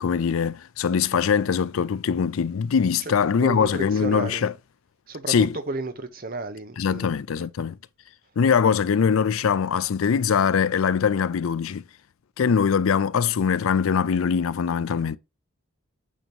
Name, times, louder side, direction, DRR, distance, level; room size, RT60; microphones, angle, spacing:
voice 1, 0.0-4.5 5.3-5.6 6.8-7.8 8.4-11.8 12.4-15.2, left 6 dB, 75° left, 0.4 m, -22 dB
voice 2, 3.4-4.5 5.1-7.1, right 3 dB, 45° right, 0.8 m, -32 dB
8.5 x 2.9 x 5.3 m
head